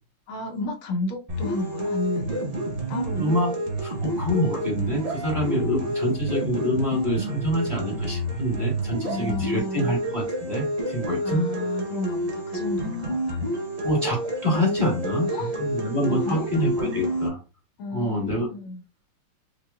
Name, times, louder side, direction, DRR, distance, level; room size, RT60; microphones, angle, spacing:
voice 1, 0.3-2.5 2.9-3.3 9.0-9.9 11.2-13.4 15.3-15.5 16.1-16.5 17.8-18.8, left 2 dB, 70° left, 1 dB, 1.5 m, -32 dB
sound 1, 1.3-17.3, right 1 dB, 55° right, 0.4 m, -29 dB
voice 2, 3.1-3.5 3.8-11.4 13.8-17.4 17.9-18.5, equal, 20° right, -3 dB, 1.8 m, -26 dB
5.6 x 2.7 x 2.3 m, 0.30 s
omnidirectional pair, 2.4 m